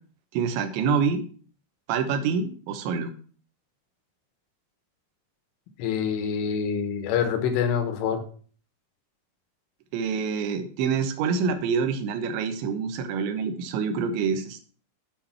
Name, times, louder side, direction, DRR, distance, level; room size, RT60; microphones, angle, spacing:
voice 1, 0.3-1.2 1.9-3.1 9.9-14.7, right 6 dB, 75° right, 7 dB, 3.2 m, -26 dB
voice 2, 5.8-8.2, left 7 dB, 80° left, 8 dB, 3.7 m, -26 dB
8.4 x 6.3 x 5.9 m, 0.43 s
omnidirectional pair, 5.6 m